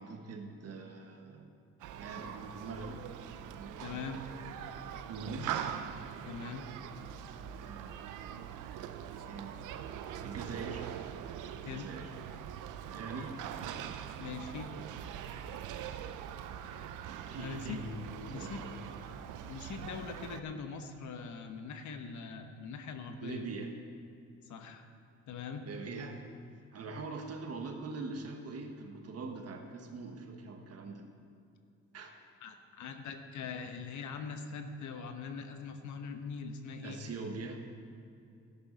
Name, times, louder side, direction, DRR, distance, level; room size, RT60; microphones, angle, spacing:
voice 1, 0.0-1.5 2.0-3.1 3.5-4.0 5.1-5.7 7.6-8.3 9.1-9.6 10.2-10.9 11.6-12.1 12.9-13.4 17.3-19.1 23.2-23.7 25.6-26.2 26.7-31.0 31.9-32.1 36.8-37.7, right 3 dB, 55° right, 4 dB, 1.5 m, -43 dB
Human group actions, 1.8-20.4, right 9 dB, 85° right, 0.6 m, -43 dB
voice 2, 3.8-4.2 6.2-6.6 11.6-11.9 14.2-14.7 17.3-17.8 18.3-18.6 19.5-23.5 24.5-24.9 25.3-25.6 32.4-37.0, left 5 dB, 75° left, 7 dB, 1.0 m, -42 dB
13.0 x 11.0 x 4.0 m, 2.5 s
cardioid pair, 90°, 30 cm